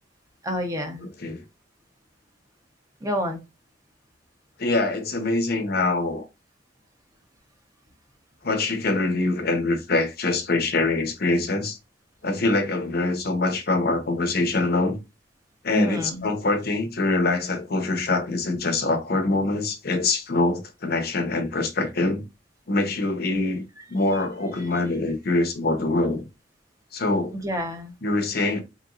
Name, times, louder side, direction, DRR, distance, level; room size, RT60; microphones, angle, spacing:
voice 1, 0.4-1.1 3.0-3.4 15.7-16.3 23.3-23.4 24.6-24.7 27.3-27.9, equal, 20° right, 0.9 m, -28 dB
voice 2, 4.6-6.2 8.4-11.8 12.2-15.0 15.6-22.2 22.7-23.6 23.9-26.2 26.9-27.3 28.0-28.6, left 2 dB, 60° left, 0.8 m, -24 dB
4.4 x 3.0 x 2.5 m
head